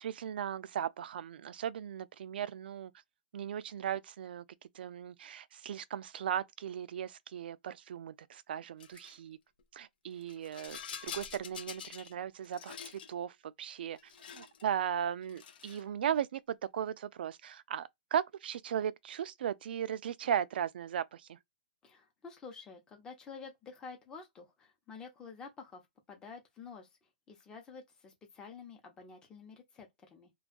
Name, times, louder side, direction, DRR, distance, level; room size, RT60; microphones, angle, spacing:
voice 1, 0.0-2.9 3.3-4.4 4.7-9.4 9.7-12.8 13.1-14.0 14.3-21.4, right 9 dB, 75° right, 0.3 m, -37 dB
Rattle, 8.8-9.1 10.2-12.1 12.4-13.1 14.0-14.6 15.2-15.9, left 8 dB, 70° left, 0.6 m, -46 dB
voice 2, 21.8-25.8 26.1-26.9 27.3-30.3, left 5 dB, 15° left, 0.7 m, -49 dB
2.3 x 2.3 x 2.4 m
hypercardioid pair, 160°, 5 cm